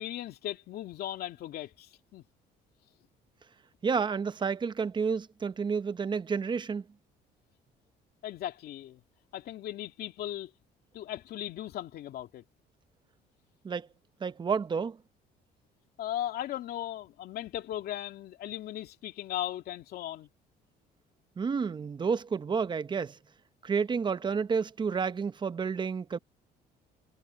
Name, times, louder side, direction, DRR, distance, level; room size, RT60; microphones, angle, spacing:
voice 1, 0.0-2.2 8.2-9.0 9.3-10.5 10.9-12.4 16.0-20.3, left 12 dB, 70° left, 2.5 m, -37 dB
voice 2, 3.8-6.8 13.6-13.9 14.2-15.0 21.4-23.2 23.6-26.2, right 5 dB, 25° right, 0.8 m, -30 dB
cardioid pair, 110°, 17 cm